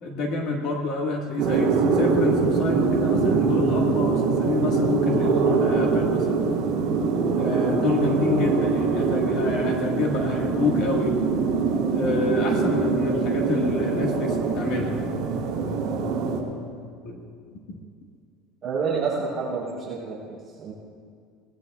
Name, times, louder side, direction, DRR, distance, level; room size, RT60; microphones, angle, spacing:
voice 1, 0.0-6.5 7.4-11.2 11.9-16.7 17.0-17.3 17.7-17.8, left 3 dB, 40° left, 1 dB, 1.6 m, -28 dB
sound 1, 1.4-16.4, right 4 dB, 45° right, 2.8 m, -23 dB
voice 2, 18.6-20.7, right 5 dB, 20° right, -8 dB, 4.0 m, -29 dB
24.5 x 18.5 x 2.4 m, 2.2 s
cardioid pair, 180°, 0 cm